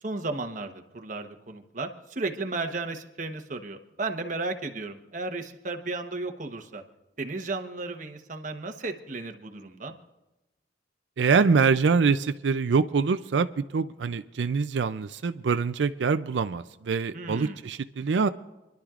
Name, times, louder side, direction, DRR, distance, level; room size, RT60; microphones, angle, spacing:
voice 1, 0.0-6.8 7.2-9.9 17.1-17.6, right 3 dB, 45° right, 6 dB, 1.1 m, -34 dB
voice 2, 11.2-18.3, right 5 dB, 85° right, 12 dB, 0.4 m, -24 dB
28.0 x 11.5 x 2.5 m, 1.0 s
head